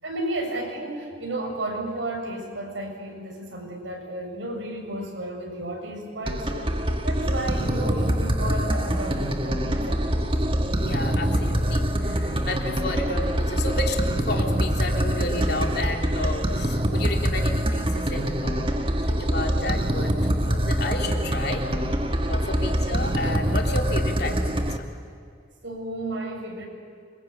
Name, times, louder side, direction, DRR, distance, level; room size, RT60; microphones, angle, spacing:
voice 1, 0.0-6.7 7.0-10.0 22.5-22.6 25.0-25.1 25.6-26.7, right 1 dB, 75° right, 1 dB, 7.1 m, -32 dB
sound 1, 6.3-24.8, equal, 30° right, 1.6 m, -24 dB
voice 2, 10.8-14.0 14.3-18.8 19.1-20.1 20.4-21.6 22.3-24.5, left 2 dB, 55° left, 2 dB, 3.3 m, -31 dB
27.0 x 25.0 x 8.5 m, 2.4 s
head